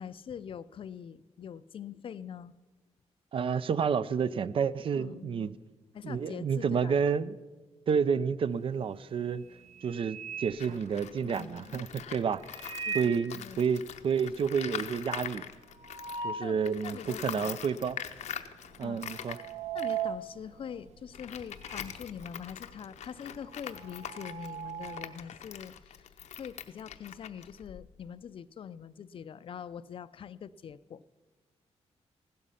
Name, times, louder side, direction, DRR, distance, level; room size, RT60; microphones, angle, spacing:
voice 1, 0.0-2.5 4.9-5.6 5.9-6.9 11.2-11.8 12.8-13.6 16.4-17.6 18.8-19.0 19.7-26.1 26.4-31.0, left 8 dB, 50° left, 16 dB, 0.4 m, -44 dB
voice 2, 3.3-5.5 6.0-7.4 7.9-9.4 9.8-12.4 12.9-15.5 16.2-18.0 18.8-19.4, right 6 dB, 50° right, 16 dB, 0.5 m, -30 dB
sound 1, 8.6-8.9 9.3-11.4 12.4-13.3 13.7-13.8 14.1-14.2 14.5-16.7 17.2-17.3 18.1-18.4 18.6-22.0 22.2-25.2, right 7 dB, 80° right, 0.9 m, -39 dB
Tools, 10.5-16.3 16.6-28.1, left 9 dB, 90° left, 0.8 m, -43 dB
15.5 x 12.0 x 5.6 m, 1.3 s
wide cardioid pair, 145°, 12 cm